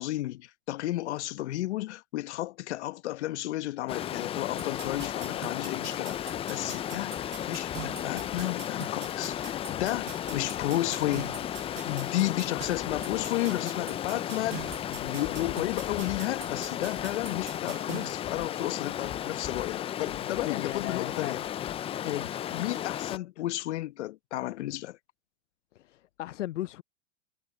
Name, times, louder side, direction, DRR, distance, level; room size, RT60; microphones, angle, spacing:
voice 1, 0.0-7.1 7.5-11.4 11.9-21.4 22.5-25.0, left 16 dB, 70° left, 1.3 m, -33 dB
Stream, 3.9-23.2, left 11 dB, 15° left, 0.4 m, -34 dB
sound 1, 4.6-18.1, right 14 dB, 80° right, 0.7 m, -45 dB
voice 2, 20.4-21.4 22.0-22.3 26.2-26.8, left 14 dB, 90° left, 0.6 m, -35 dB
hypercardioid pair, 115°, 35 cm